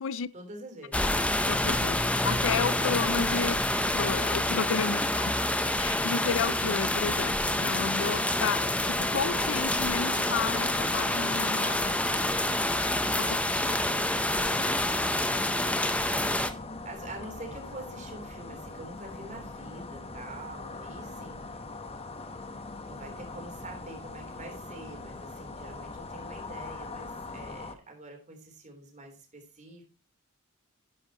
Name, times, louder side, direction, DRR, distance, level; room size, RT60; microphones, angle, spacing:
voice 1, 0.3-1.2 16.1-21.8 22.2-22.6 22.8-29.8, right 2 dB, 35° right, 3.6 m, -46 dB
sound 1, 0.9-16.5, left 1 dB, 5° left, 0.7 m, -27 dB
voice 2, 1.2-5.5 5.8-12.0, left 6 dB, 60° left, 0.4 m, -32 dB
sound 2, 8.9-27.7, left 3 dB, 30° left, 1.0 m, -41 dB
11.0 x 10.5 x 3.0 m
head